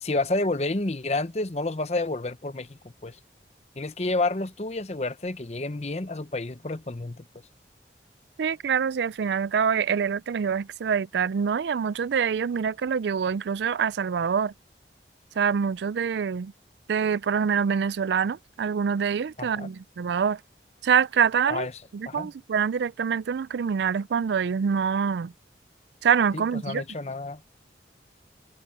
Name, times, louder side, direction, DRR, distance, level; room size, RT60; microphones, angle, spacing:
voice 1, 0.0-3.2 3.8-7.2 19.4-19.7 21.5-21.7 22.1-22.3 26.3-27.4, left 2 dB, 35° left, 0.9 m, -30 dB
voice 2, 8.4-14.5 15.4-16.5 16.9-20.4 20.8-21.7 21.9-25.3 26.0-26.8, right 6 dB, 75° right, 0.4 m, -25 dB
head